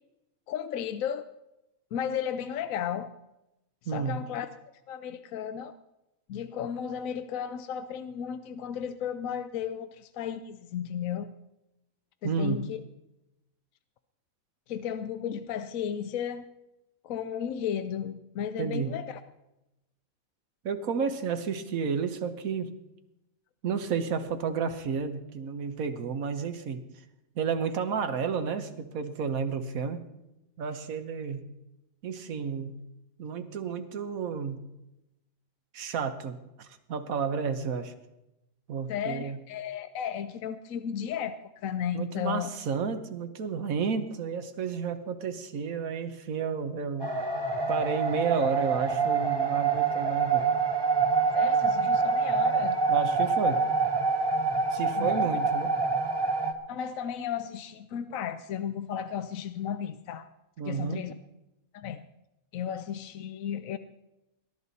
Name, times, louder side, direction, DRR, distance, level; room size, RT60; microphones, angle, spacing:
voice 1, 0.5-1.3 1.9-3.1 3.8-4.5 4.9-5.8 6.3-11.3 12.2-12.8 14.7-16.5 17.0-19.2 38.9-42.5 51.3-52.8 54.9-55.4 56.7-60.3 60.6-61.1 61.7-62.0 62.5-63.8, left 8 dB, 75° left, 10 dB, 1.0 m, -34 dB
voice 2, 12.2-12.6 18.6-18.9 20.6-22.7 23.6-26.8 27.3-30.0 30.6-31.4 32.0-32.8 33.2-34.6 35.7-37.9 38.7-39.4 41.9-47.1 47.7-50.5 52.9-53.6 54.7-55.7 60.6-61.0, right 6 dB, 75° right, 8 dB, 1.5 m, -31 dB
sound 1, 47.0-56.5, right 4 dB, 20° right, 0.8 m, -26 dB
20.0 x 11.0 x 4.1 m, 0.92 s
omnidirectional pair, 1.5 m